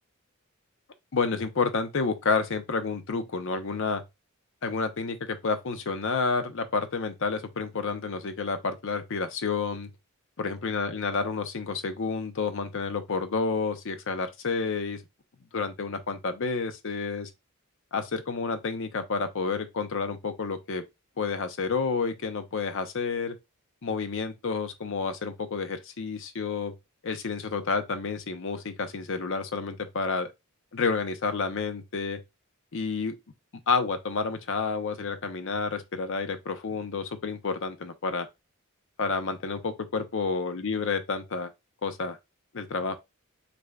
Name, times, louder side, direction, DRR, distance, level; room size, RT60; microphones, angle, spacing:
voice 1, 1.1-4.0 4.6-9.9 10.4-15.0 15.5-17.3 17.9-20.8 21.2-23.4 23.8-26.7 27.0-30.3 30.7-32.2 32.7-33.1 33.7-38.3 39.0-41.5 41.8-42.2 42.5-43.0, left 4 dB, 60° left, 0.6 m, -30 dB
6.6 x 2.6 x 2.3 m
head